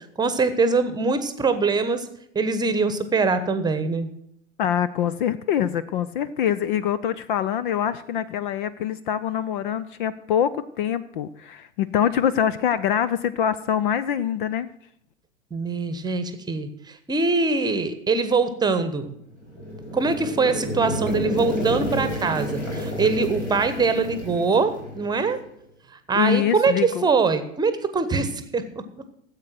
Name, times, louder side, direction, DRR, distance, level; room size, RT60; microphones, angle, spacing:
voice 1, 0.2-2.1 2.3-4.1 15.5-16.7 17.1-19.1 19.9-25.4 26.1-28.7, right 4 dB, 10° right, 11 dB, 1.1 m, -23 dB
voice 2, 4.6-14.7 26.1-27.1, left 9 dB, 45° left, 16 dB, 0.6 m, -24 dB
sound 1, 19.4-25.4, equal, 80° left, 5.3 m, -30 dB
14.5 x 8.1 x 6.0 m, 0.74 s
figure-of-eight pair, 95°, 37 cm